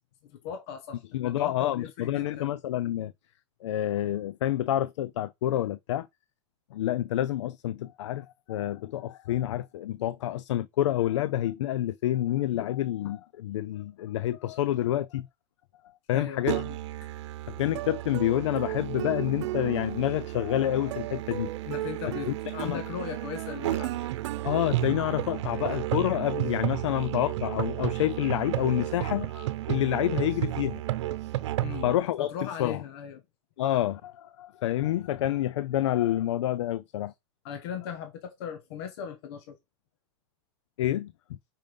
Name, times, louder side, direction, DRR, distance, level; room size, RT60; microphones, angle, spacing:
voice 1, 0.3-2.5 16.1-16.8 21.6-24.1 31.6-31.9 32.2-33.2 37.4-39.6, left 8 dB, 60° left, 1.2 m, -38 dB
voice 2, 1.1-3.1 3.6-6.1 6.7-15.3 16.1-16.6 17.5-21.5 22.3-22.8 24.4-30.8 31.8-32.3 32.6-32.8 33.6-37.1 40.8-41.4, left 13 dB, 85° left, 0.5 m, -28 dB
Musical instrument, 16.5-32.0, right 15 dB, 70° right, 0.9 m, -32 dB
5.3 x 5.2 x 5.3 m
supercardioid pair, 150°, 15 cm